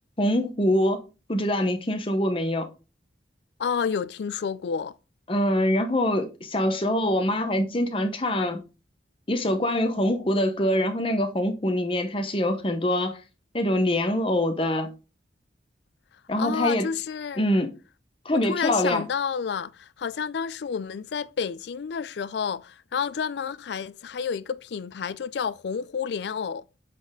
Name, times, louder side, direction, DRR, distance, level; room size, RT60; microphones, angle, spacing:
voice 1, 0.2-2.7 5.3-8.6 9.3-13.2 13.5-14.9 16.3-16.9 17.4-17.7 18.2-19.0, left 1 dB, 30° left, 0.9 m, -24 dB
voice 2, 3.6-4.9 16.4-17.5 18.3-26.6, left 6 dB, 65° left, 0.4 m, -30 dB
7.4 x 4.1 x 3.6 m
head